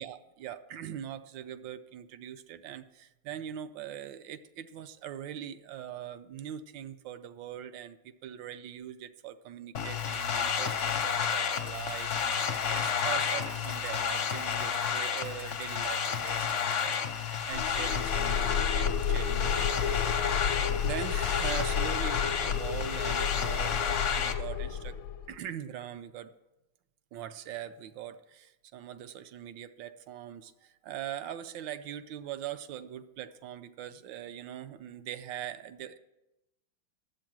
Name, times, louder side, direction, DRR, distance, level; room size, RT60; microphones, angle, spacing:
voice 1, 0.0-16.5 16.8-20.5 20.8-25.0 25.3-26.3 27.1-36.0, right 10 dB, 75° right, 11 dB, 1.2 m, -42 dB
sound 1, 9.7-24.3, left 7 dB, 55° left, 0.8 m, -31 dB
Camera, 10.0-17.0, left 1 dB, 5° right, 0.4 m, -51 dB
sound 2, 17.5-25.3, left 7 dB, 75° left, 1.4 m, -31 dB
11.5 x 7.8 x 6.0 m, 0.95 s
omnidirectional pair, 2.3 m